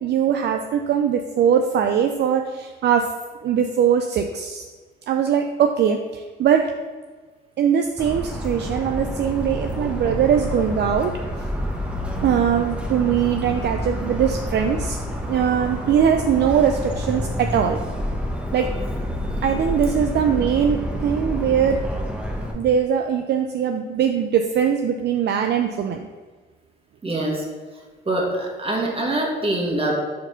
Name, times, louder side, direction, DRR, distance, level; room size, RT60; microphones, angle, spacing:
voice 1, 0.0-3.1 3.4-4.6 5.1-6.7 7.6-11.2 12.2-15.0 15.3-17.8 18.5-18.7 19.4-21.8 22.5-26.1, right 8 dB, 60° right, 5 dB, 0.5 m, -21 dB
Motor vehicle (road) / Siren, 8.0-22.5, equal, 5° right, 1.1 m, -28 dB
voice 2, 27.0-27.4 28.0-29.9, right 1 dB, 30° right, -1 dB, 1.7 m, -24 dB
4.6 x 4.5 x 5.7 m, 1.4 s
cardioid pair, 90°, 20 cm